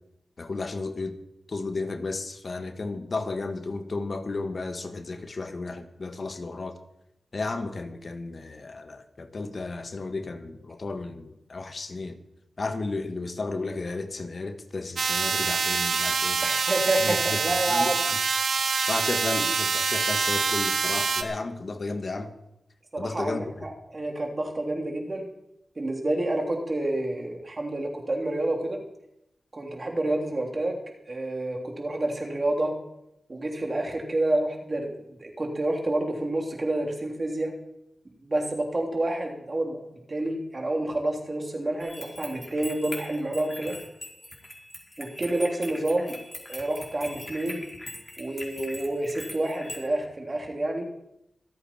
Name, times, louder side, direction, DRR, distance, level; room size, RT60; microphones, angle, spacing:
voice 1, 0.4-1.2 1.5-6.7 7.3-12.2 12.6-16.4 17.0-18.2 18.9-22.3 23.0-23.7, left 3 dB, 60° left, 7 dB, 1.6 m, -33 dB
sound 1, 15.0-21.2, right 5 dB, 80° right, 1.1 m, -26 dB
voice 2, 16.4-18.0 22.9-25.3 25.8-28.8 29.5-32.7 33.3-37.5 38.2-39.8 40.1-43.7 45.0-46.2 46.5-47.6 48.2-50.9, right 1 dB, 45° right, 1 dB, 3.3 m, -28 dB
sound 2, 41.8-49.9, left 1 dB, 25° left, 4.7 m, -41 dB
26.0 x 8.7 x 4.5 m, 0.85 s
cardioid pair, 40°, 0 cm